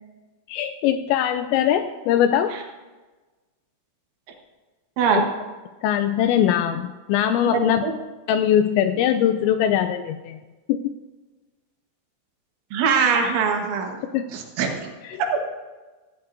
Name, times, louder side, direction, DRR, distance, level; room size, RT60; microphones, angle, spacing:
voice 1, 0.5-2.5 5.2-5.3 5.8-7.9 8.3-10.4 10.7-10.8 14.1-14.2 15.0-15.2, left 10 dB, 85° left, 9 dB, 2.6 m, -21 dB
voice 2, 7.5-7.9 12.7-14.0 14.3-14.8 15.3-15.4, right 5 dB, 75° right, 2 dB, 3.8 m, -22 dB
17.0 x 15.0 x 2.7 m, 1.2 s
omnidirectional pair, 5.6 m